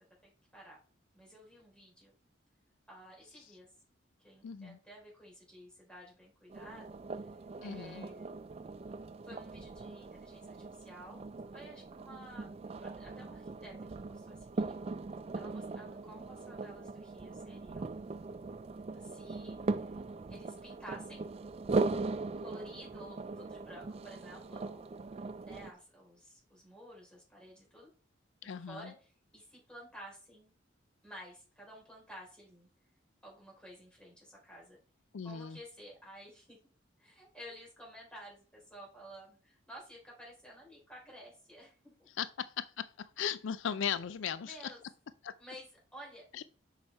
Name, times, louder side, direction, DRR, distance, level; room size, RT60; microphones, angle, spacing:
voice 1, 0.2-0.8 1.1-2.1 2.9-3.7 4.2-7.3 7.6-8.4 9.2-11.3 11.5-12.5 12.8-13.8 14.1-14.8 15.3-18.0 18.9-20.0 20.3-21.2 22.0-27.9 28.4-30.5 31.0-32.7 33.2-34.8 35.2-36.6 37.0-42.1 44.4-44.8 45.4-46.3, equal, 5° left, 3.9 m, -52 dB
voice 2, 4.4-4.8 7.6-8.1 28.4-28.9 35.1-35.6 42.2-42.9 43.2-44.7 45.2-45.3 46.3-46.4, left 8 dB, 85° left, 0.4 m, -37 dB
sound 1, 6.5-25.7, right 3 dB, 30° right, 0.3 m, -40 dB
6.9 x 5.0 x 4.4 m
head